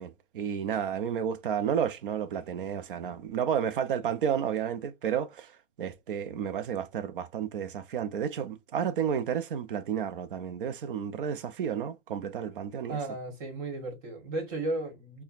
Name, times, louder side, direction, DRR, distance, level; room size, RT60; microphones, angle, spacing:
voice 1, 0.0-5.5 5.8-13.0, right 8 dB, 50° right, 0.5 m, -31 dB
voice 2, 12.9-15.2, right 2 dB, 30° right, 1.3 m, -34 dB
5.7 x 2.2 x 2.4 m
hypercardioid pair, 155°, 36 cm